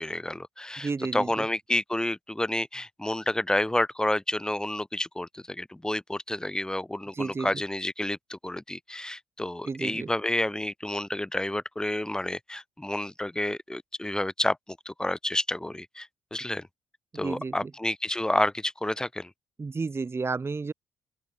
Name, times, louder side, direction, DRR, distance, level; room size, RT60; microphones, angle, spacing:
voice 1, 0.0-16.7 17.1-19.3, left 1 dB, 10° left, 2.6 m, -30 dB
voice 2, 0.8-1.5 7.1-7.6 9.7-10.1 17.1-17.7 19.6-20.7, right 4 dB, 30° right, 4.2 m, -32 dB
open air
cardioid pair, 80°, 8 cm